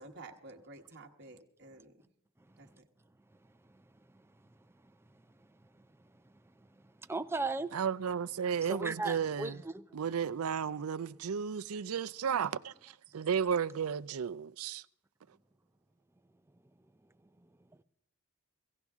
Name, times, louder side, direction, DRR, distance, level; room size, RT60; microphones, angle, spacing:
voice 1, 0.0-2.0 2.6-2.9, right 2 dB, 50° right, 1.2 m, -51 dB
voice 2, 7.1-7.7 8.7-9.5, right 3 dB, 10° right, 0.5 m, -34 dB
voice 3, 7.7-9.6 9.9-14.8, right 7 dB, 65° right, 0.4 m, -33 dB
17.0 x 16.5 x 3.6 m
head